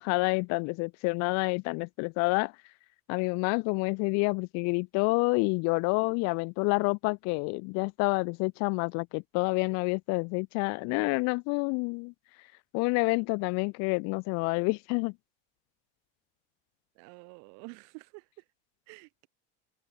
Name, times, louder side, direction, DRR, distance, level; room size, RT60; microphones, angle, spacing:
voice 1, 0.0-2.5 3.1-12.1 12.7-15.1, left 30 dB, 60° left, 0.5 m, -28 dB
voice 2, 16.9-18.4 18.9-19.3, right 35 dB, 70° right, 4.6 m, -49 dB
cardioid pair, 155°, 31 cm